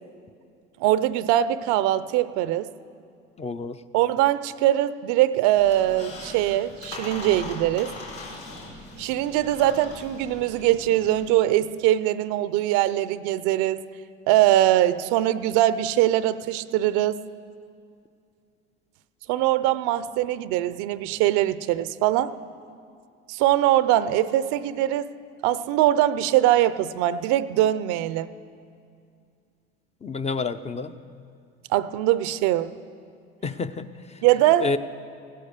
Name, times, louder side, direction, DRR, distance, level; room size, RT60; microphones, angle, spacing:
voice 1, 0.8-2.7 3.9-7.9 9.0-13.8 14.3-17.2 19.3-22.3 23.3-25.1 25.4-28.3 31.7-32.7 34.2-34.7, right 13 dB, 70° right, 15 dB, 0.6 m, -22 dB
voice 2, 3.4-3.8 30.0-30.9 33.4-33.9 34.6-34.8, left 4 dB, 20° left, 10 dB, 0.6 m, -28 dB
Squeak, 5.5-11.3, left 3 dB, 70° left, 4.2 m, -40 dB
16.5 x 10.0 x 6.7 m, 2.3 s
hypercardioid pair, 80°, 31 cm